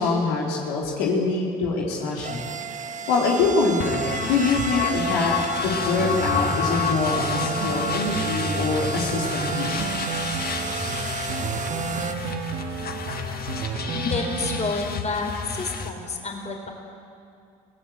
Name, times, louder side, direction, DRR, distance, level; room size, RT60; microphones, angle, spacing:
voice 1, 0.0-2.4 3.1-9.9, left 3 dB, 80° left, -3 dB, 3.5 m, -24 dB
sound 1, 1.8-12.1, right 4 dB, 40° right, 1.2 m, -32 dB
sound 2, 3.8-15.9, left 7 dB, 50° left, 1.9 m, -31 dB
sound 3, 6.0-14.7, right 4 dB, 75° right, 2.2 m, -31 dB
voice 2, 14.1-16.7, left 3 dB, 35° left, 3 dB, 4.5 m, -29 dB
24.5 x 17.5 x 7.8 m, 2.4 s
hypercardioid pair, 60°, 20 cm